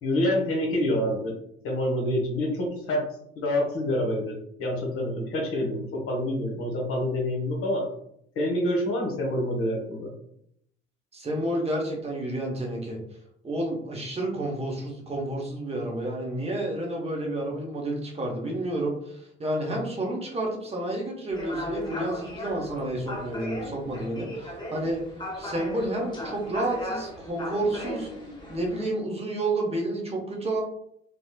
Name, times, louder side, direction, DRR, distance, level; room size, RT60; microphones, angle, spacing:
voice 1, 0.0-1.4 1.6-3.0 3.4-7.9 8.4-10.1, left 1 dB, 45° left, 0 dB, 0.9 m, -27 dB
voice 2, 11.1-13.0 13.4-25.0 25.4-28.1 28.5-30.6, right 1 dB, 20° right, 0 dB, 0.8 m, -30 dB
sound 1, 21.3-28.9, left 1 dB, 15° left, 0.8 m, -36 dB
3.0 x 2.0 x 2.3 m, 0.72 s
figure-of-eight pair, 55°, 32 cm